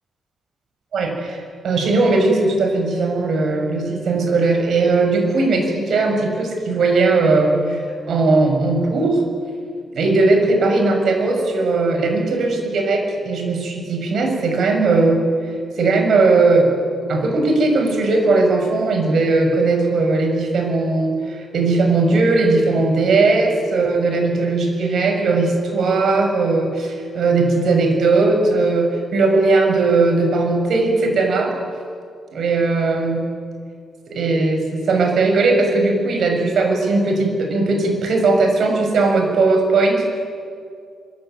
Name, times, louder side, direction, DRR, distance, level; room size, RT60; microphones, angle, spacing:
voice 1, 0.9-9.2 9.9-15.2 15.8-16.7 17.1-31.5 32.3-33.2 34.1-40.0, right 3 dB, 60° right, 3 dB, 6.4 m, -18 dB
25.0 x 23.5 x 9.1 m, 2.2 s
cardioid pair, 145°, 0 cm